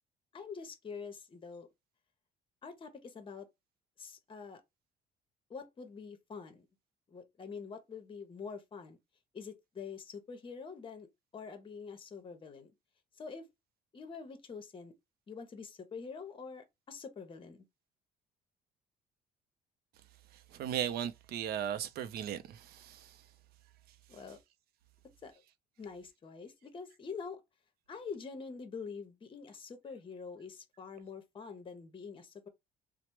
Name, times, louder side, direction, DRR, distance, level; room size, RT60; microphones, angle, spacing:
voice 1, 0.3-1.7 2.6-3.5 4.0-4.6 5.5-6.7 7.1-9.0 9.3-11.1 11.3-12.7 13.2-13.4 13.9-14.9 15.3-17.6 24.1-24.4 25.2-25.3 25.8-27.4 27.9-32.5, left 5 dB, 30° left, 0.7 m, -45 dB
voice 2, 20.5-23.1, right 10 dB, 65° right, 0.5 m, -37 dB
3.1 x 2.0 x 2.9 m
cardioid pair, 110°, 17 cm